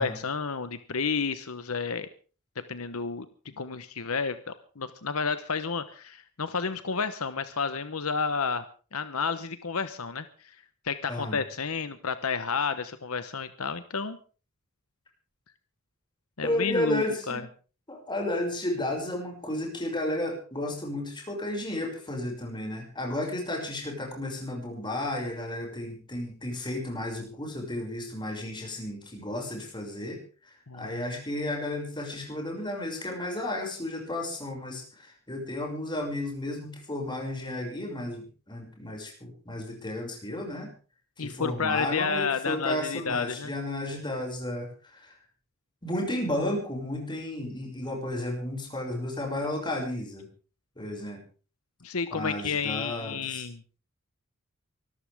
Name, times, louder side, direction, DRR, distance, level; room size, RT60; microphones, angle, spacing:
voice 1, 0.0-2.1 2.6-3.3 3.6-8.6 8.9-10.5 10.8-14.2 16.4-17.4 30.7-31.2 41.2-43.5 51.8-53.6, left 5 dB, 80° left, 11 dB, 1.1 m, -31 dB
voice 2, 11.1-11.4 16.4-17.5 17.9-30.2 30.5-40.7 41.2-44.7 44.9-45.1 45.8-50.3 50.8-51.2 52.1-53.4, left 1 dB, 20° left, 1 dB, 6.4 m, -33 dB
24.5 x 14.0 x 3.6 m, 0.37 s
head